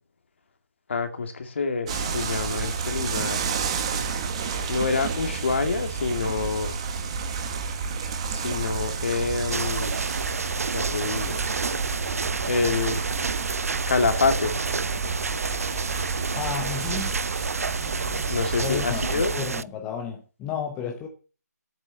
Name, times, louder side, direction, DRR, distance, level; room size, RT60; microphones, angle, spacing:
voice 1, 0.9-3.5 4.7-6.7 8.3-10.0 10.7-11.4 12.5-13.0 13.9-14.6 18.3-19.3, left 4 dB, 40° left, 2.1 m, -27 dB
sound 1, 1.9-19.4, right 5 dB, 20° right, 1.4 m, -30 dB
sound 2, 9.5-19.6, right 4 dB, 55° right, 0.5 m, -30 dB
voice 2, 16.3-17.2 18.6-21.1, left 7 dB, 10° left, 0.8 m, -32 dB
10.5 x 8.2 x 6.9 m
figure-of-eight pair, 165°, 9 cm